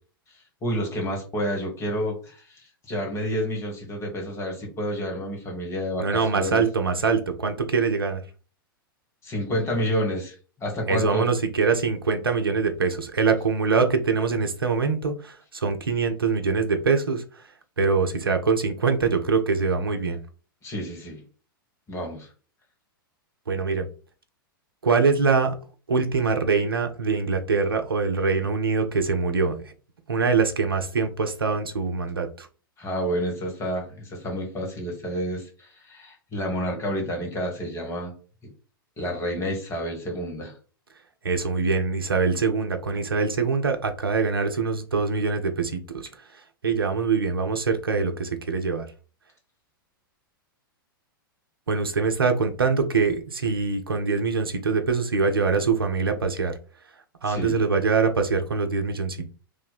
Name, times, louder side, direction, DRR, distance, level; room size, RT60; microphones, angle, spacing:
voice 1, 0.6-6.6 9.2-11.2 20.6-21.2 21.9-22.3 32.8-38.1 39.0-40.5 57.3-57.6, equal, 25° left, 0 dB, 1.5 m, -29 dB
voice 2, 6.0-8.2 10.9-17.4 17.8-20.2 23.5-23.9 24.8-25.5 25.9-29.7 30.1-32.5 41.2-46.1 46.6-48.9 51.7-56.5 57.2-59.3, right 4 dB, 85° right, 6 dB, 0.6 m, -24 dB
3.0 x 2.1 x 4.0 m, 0.37 s
figure-of-eight pair, 100°, 12 cm